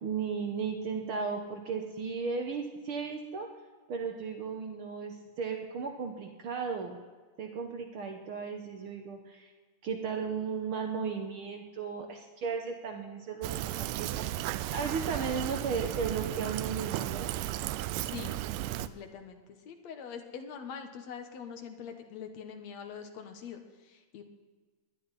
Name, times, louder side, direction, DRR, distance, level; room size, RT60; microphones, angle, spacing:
voice 1, 0.0-3.5 3.9-7.0 7.4-9.5 9.8-17.3, right 5 dB, 70° right, 3 dB, 1.2 m, -35 dB
Fill (with liquid), 13.4-18.9, right 15 dB, 90° right, 2.2 m, -34 dB
voice 2, 18.0-18.4 18.8-24.2, left 7 dB, 65° left, 6 dB, 2.0 m, -44 dB
20.0 x 11.5 x 4.1 m, 1.4 s
omnidirectional pair, 3.9 m